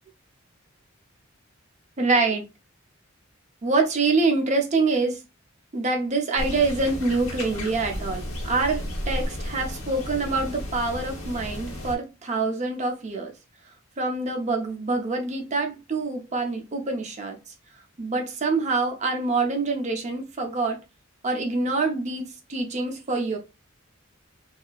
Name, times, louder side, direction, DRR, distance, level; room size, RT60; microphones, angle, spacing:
voice 1, 2.0-2.5 3.6-5.2 5.7-13.3 14.0-17.5 18.0-20.8 21.2-23.4, right 3 dB, 35° right, 0.5 m, -25 dB
sound 1, 6.4-12.0, equal, 75° left, 1.0 m, -33 dB
2.7 x 2.3 x 2.3 m
head